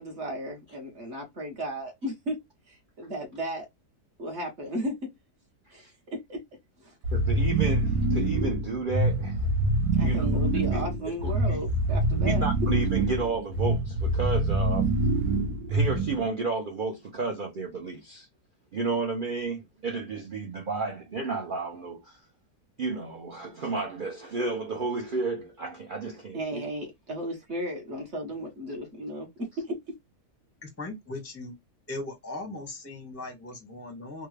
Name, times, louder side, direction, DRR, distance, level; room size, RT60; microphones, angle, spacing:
voice 1, 0.0-2.4 2.7-3.7 4.2-4.9 5.7-6.4 6.8-6.9 9.9-12.4 26.3-29.3 29.7-29.8, equal, 45° right, 1.2 m, -35 dB
sound 1, 7.0-16.3, right 2 dB, 65° right, 1.4 m, -25 dB
voice 2, 7.1-9.4 10.0-10.3 10.7-10.8 11.2-11.6 12.2-14.9 15.7-18.3 18.7-22.2 22.8-26.6, right 3 dB, 85° right, 0.4 m, -32 dB
voice 3, 30.6-31.5 31.9-34.3, left 2 dB, 15° left, 0.5 m, -38 dB
3.5 x 2.2 x 3.2 m
omnidirectional pair, 1.8 m